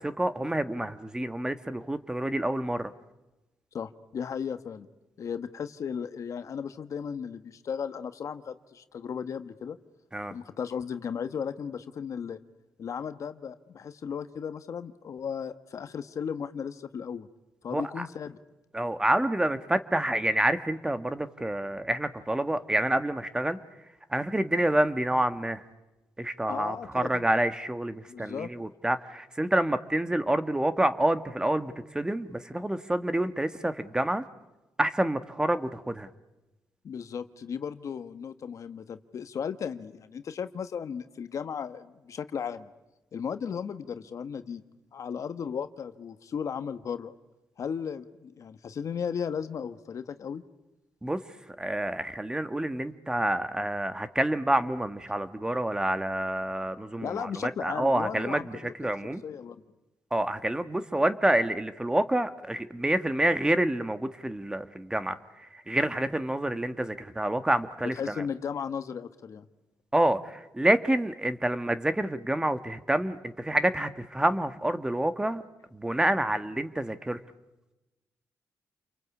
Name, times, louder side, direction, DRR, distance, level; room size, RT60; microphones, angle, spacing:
voice 1, 0.0-2.9 10.1-10.3 17.7-18.1 18.7-23.6 24.1-25.6 26.2-34.2 34.8-36.1 51.0-51.2 51.6-59.2 60.1-65.2 65.5-68.2 69.9-75.4 75.7-77.2, right 1 dB, 10° right, 11 dB, 1.3 m, -28 dB
voice 2, 3.7-4.9 5.2-9.8 10.3-12.4 12.8-17.3 17.6-18.4 26.5-27.3 28.1-28.5 36.8-42.7 43.1-44.6 44.9-47.1 47.6-50.4 57.0-58.9 59.2-59.6 68.0-69.5, left 7 dB, 65° left, 11 dB, 1.3 m, -35 dB
29.5 x 23.5 x 8.4 m, 1.1 s
cardioid pair, 90°, 6 cm